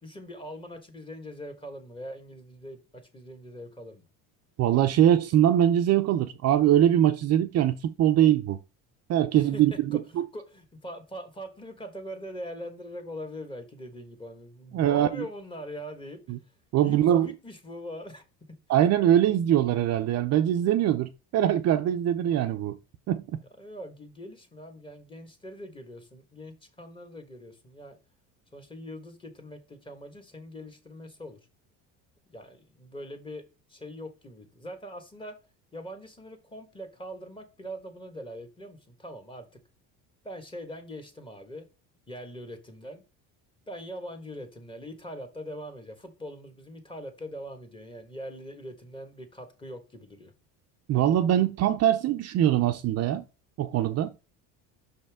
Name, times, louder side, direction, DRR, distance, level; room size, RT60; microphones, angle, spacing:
voice 1, 0.0-4.1 9.3-16.4 16.8-18.2 23.6-28.0 28.5-31.4 32.3-33.4 33.7-35.3 35.7-39.5 40.2-41.7 42.1-43.0 43.7-50.3, equal, 15° left, 1.4 m, -42 dB
voice 2, 4.6-8.6 9.1-10.3 14.7-15.2 16.3-16.4 16.7-17.3 18.7-22.8 23.1-23.4 50.9-53.2 53.6-54.1, right 11 dB, 45° right, 0.6 m, -22 dB
6.0 x 5.4 x 3.5 m
cardioid pair, 125°, 35 cm